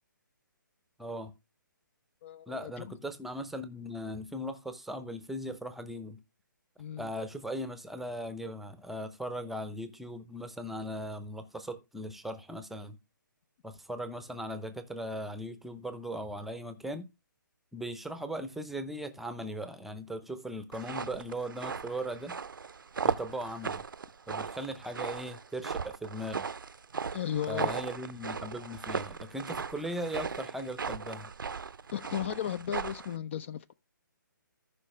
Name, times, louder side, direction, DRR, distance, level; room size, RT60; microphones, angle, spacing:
voice 1, 1.0-1.3 2.5-6.2 7.0-13.0 13.6-17.1 17.7-22.3 23.0-23.8 24.3-26.5 27.5-31.3, equal, ahead, 0.7 m, -38 dB
voice 2, 2.2-2.9 6.8-7.1 27.1-27.7 31.9-33.7, left 9 dB, 35° left, 0.4 m, -35 dB
sound 1, 20.7-33.1, right 5 dB, 75° right, 0.6 m, -37 dB
14.0 x 5.5 x 3.3 m
figure-of-eight pair, 140°, 11 cm